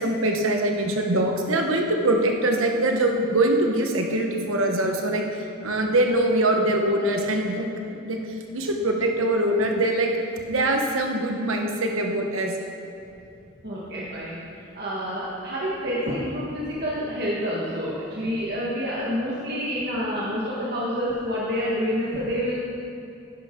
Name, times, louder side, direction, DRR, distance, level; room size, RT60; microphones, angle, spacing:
voice 1, 0.0-5.2 5.6-7.7 8.0-8.2 8.5-10.1 10.5-12.6 18.2-18.3, right 1 dB, 85° right, 2 dB, 1.2 m, -23 dB
voice 2, 13.6-22.6, equal, 50° right, -7 dB, 1.5 m, -28 dB
11.0 x 10.0 x 3.8 m, 2.8 s
head